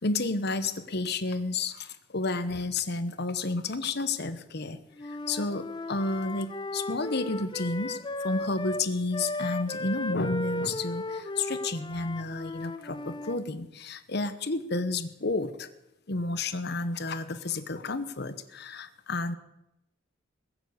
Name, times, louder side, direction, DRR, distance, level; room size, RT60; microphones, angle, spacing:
voice 1, 0.0-15.7 16.1-19.4, left 3 dB, 55° left, 11 dB, 1.1 m, -31 dB
Wind instrument woodwind instrument, 5.0-8.9 9.1-13.4, left 1 dB, 25° left, 0.7 m, -36 dB
21.0 x 7.3 x 8.1 m, 0.88 s
head